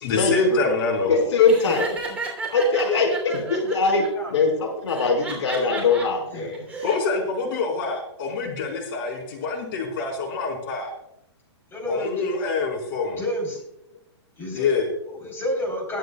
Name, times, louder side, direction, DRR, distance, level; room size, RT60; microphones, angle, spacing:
voice 1, 0.0-1.3 6.8-10.9 11.9-13.2 14.5-14.8, left 3 dB, 50° left, 2 dB, 4.1 m, -26 dB
voice 2, 1.1-1.9 2.5-4.0 4.3-6.6, left 4 dB, 75° left, 3 dB, 4.8 m, -21 dB
Laughter, 1.5-4.1 4.9-6.0 6.5-7.0, right 3 dB, 10° right, 3.0 m, -32 dB
voice 3, 3.2-3.6 4.2-4.3 5.7-5.8 6.3-6.7 11.7-12.5 13.1-13.6 14.4-16.0, left 1 dB, 15° left, 1 dB, 3.6 m, -31 dB
22.0 x 9.2 x 2.3 m, 0.77 s
hypercardioid pair, 150°, 15 cm